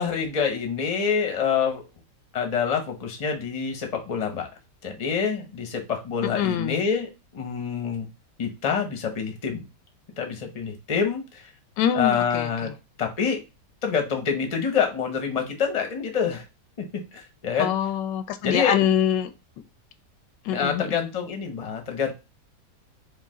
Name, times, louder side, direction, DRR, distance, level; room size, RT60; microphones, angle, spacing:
voice 1, 0.0-1.8 2.3-4.5 4.8-8.1 8.4-9.7 10.2-11.4 11.9-12.7 13.0-13.4 13.8-16.4 16.8-17.7 18.4-18.9 20.5-22.1, left 6 dB, 35° left, 3 dB, 0.6 m, -26 dB
voice 2, 6.2-6.8 11.8-12.7 17.6-19.3 20.4-21.0, left 9 dB, 85° left, 9 dB, 1.2 m, -25 dB
4.7 x 2.4 x 3.5 m, 0.27 s
omnidirectional pair, 1.8 m